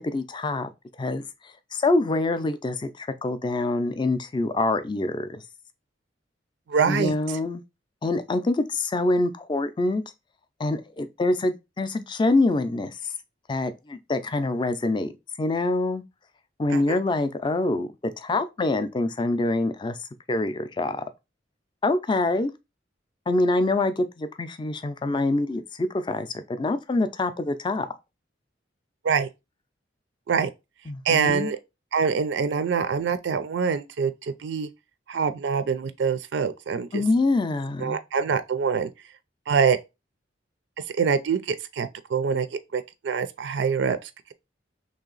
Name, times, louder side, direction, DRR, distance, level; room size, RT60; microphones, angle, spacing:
voice 1, 0.1-0.7 1.0-1.2 1.7-5.4 6.9-7.6 8.0-10.0 10.6-13.0 13.5-15.1 15.4-16.0 16.6-20.0 20.3-21.0 21.8-22.5 23.3-27.9 30.9-31.5 36.9-38.0, left 2 dB, 25° left, 0.4 m, -25 dB
voice 2, 6.7-7.1 16.7-17.0 29.0-29.3 30.3-30.5 31.1-31.6 31.9-34.7 35.1-37.0 37.8-38.9 39.5-39.8 41.0-44.3, right 6 dB, 70° right, 0.4 m, -25 dB
3.1 x 2.8 x 3.8 m
head